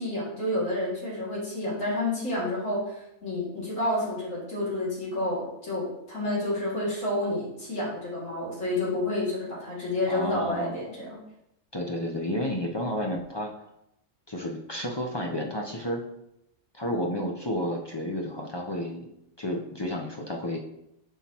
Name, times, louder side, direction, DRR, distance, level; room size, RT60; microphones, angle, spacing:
voice 1, 0.0-11.2, left 1 dB, 65° left, -7 dB, 2.7 m, -29 dB
voice 2, 10.1-10.7 11.7-13.5 14.3-16.0 16.7-19.0 19.4-20.6, left 1 dB, 40° left, 0 dB, 0.3 m, -31 dB
7.1 x 5.7 x 2.9 m, 0.81 s
omnidirectional pair, 1.5 m